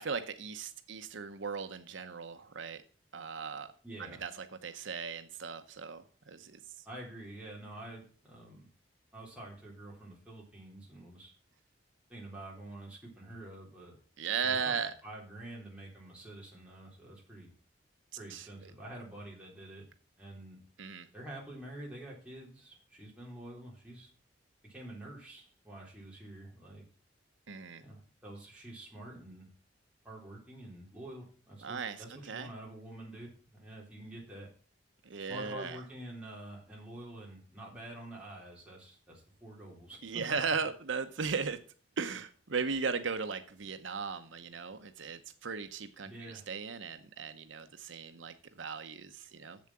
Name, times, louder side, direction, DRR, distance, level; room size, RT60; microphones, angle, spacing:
voice 1, 0.0-2.8 3.1-3.7 4.0-6.6 14.2-14.9 18.3-18.5 20.8-21.1 27.5-27.8 31.6-32.5 35.1-35.8 40.0-41.6 42.0-49.6, right 5 dB, 80° right, 9 dB, 0.8 m, -37 dB
voice 2, 3.8-4.2 6.9-8.7 9.1-11.3 12.1-14.0 14.4-14.7 15.0-17.5 18.2-19.8 20.2-20.6 21.1-24.1 24.6-26.8 27.8-29.5 30.0-34.5 35.3-40.2 46.0-46.4, right 1 dB, 5° right, -4 dB, 3.7 m, -47 dB
7.6 x 7.3 x 7.3 m, 0.41 s
head